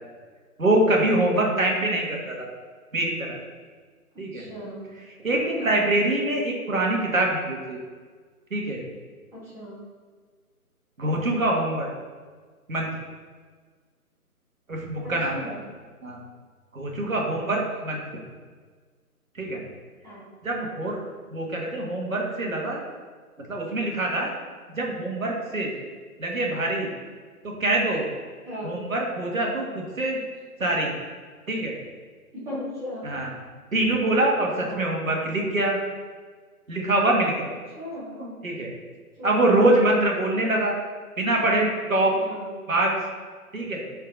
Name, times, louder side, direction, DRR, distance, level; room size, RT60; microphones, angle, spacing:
voice 1, 0.6-2.5 2.9-3.4 4.2-4.4 5.2-7.8 8.5-8.8 11.0-11.9 12.7-12.9 14.7-15.6 16.0-16.2 16.7-18.0 19.4-19.6 20.4-21.0 21.3-22.8 23.5-24.3 24.7-25.7 26.2-26.9 27.6-28.1 28.6-30.2 30.6-30.9 31.5-31.8 33.0-33.3 33.7-35.8 36.7-37.5 38.2-38.7 39.2-40.8 41.2-42.1 42.7-42.9 43.5-43.8, right 1 dB, 60° right, -1 dB, 2.1 m, -24 dB
voice 2, 1.3-1.6 4.3-4.8 5.5-5.8 9.3-9.8 15.0-15.6 17.2-17.5 20.0-20.2 28.4-28.7 32.5-33.0 34.6-34.9 37.8-38.2 39.2-39.8 42.2-42.5, equal, 5° right, -11 dB, 1.9 m, -37 dB
9.7 x 4.5 x 3.9 m, 1.5 s
figure-of-eight pair, 145°, 45 cm